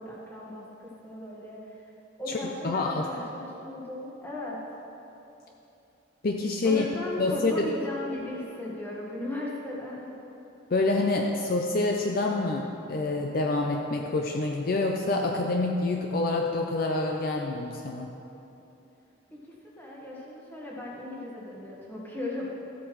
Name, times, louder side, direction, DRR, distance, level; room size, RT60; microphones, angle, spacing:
voice 1, 0.0-1.9 2.2-4.6 6.6-10.1 19.4-22.5, left 1 dB, 10° left, -5 dB, 1.4 m, -37 dB
voice 2, 2.3-3.1 6.2-6.9 7.2-7.7 10.7-18.1, left 2 dB, 45° left, 2 dB, 0.5 m, -27 dB
13.5 x 8.1 x 3.1 m, 2.9 s
head